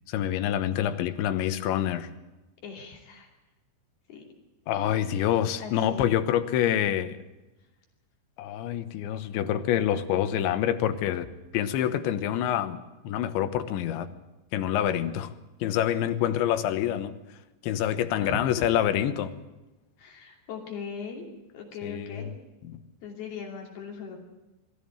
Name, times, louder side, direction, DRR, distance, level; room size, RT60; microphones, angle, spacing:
voice 1, 0.1-2.1 4.7-7.2 8.4-11.3 11.5-14.1 14.5-15.3 15.6-17.2 17.6-19.3 21.8-22.3 22.6-22.8, left 10 dB, 85° left, 10 dB, 3.5 m, -27 dB
voice 2, 2.6-3.3 4.1-4.2 4.7-4.9 5.6-6.1 18.2-18.6 20.0-21.3 21.5-22.3 23.0-24.2, left 6 dB, 60° left, 2 dB, 4.6 m, -39 dB
22.0 x 15.0 x 8.9 m, 1.1 s
omnidirectional pair, 5.2 m